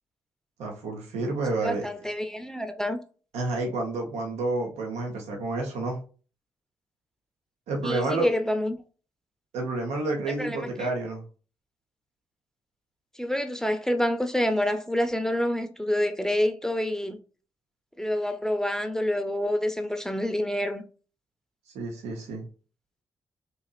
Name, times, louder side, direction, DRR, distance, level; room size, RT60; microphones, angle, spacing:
voice 1, 0.6-1.9 3.3-6.0 7.7-8.3 9.5-11.2 21.7-22.4, right 2 dB, 75° right, 0.9 m, -29 dB
voice 2, 1.6-3.0 7.8-8.8 10.4-10.9 13.2-17.2 18.0-20.8, left 1 dB, 5° left, 0.6 m, -27 dB
4.1 x 2.8 x 2.4 m
hypercardioid pair, 40°, 11 cm